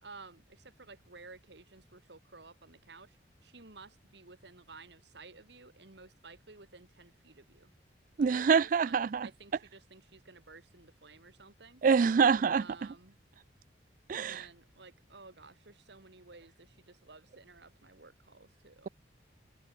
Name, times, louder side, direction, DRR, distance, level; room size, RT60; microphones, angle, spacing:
voice 1, 0.0-7.7 8.2-11.8 12.5-13.2 14.1-18.9, right 3 dB, 65° right, 2.1 m, -54 dB
voice 2, 8.2-9.3 11.8-12.6 14.1-14.4, right 6 dB, 45° right, 0.3 m, -25 dB
head